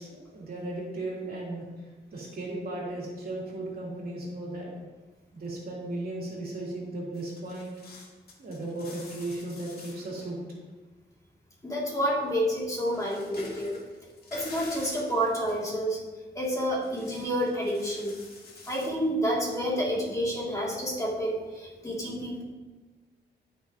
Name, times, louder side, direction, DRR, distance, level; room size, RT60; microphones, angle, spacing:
voice 1, 0.0-4.7 5.3-7.7 8.4-10.4, right 2 dB, 55° right, -4 dB, 2.8 m, -36 dB
sound 1, 7.1-10.2 12.1-12.2 12.8-15.6 16.6-18.9, left 3 dB, 55° left, 2.0 m, -48 dB
voice 2, 11.6-13.8 14.3-16.0 16.3-18.2 18.7-22.4, equal, 15° left, -4 dB, 2.3 m, -29 dB
13.0 x 6.0 x 2.8 m, 1.3 s
cardioid pair, 105°, 18 cm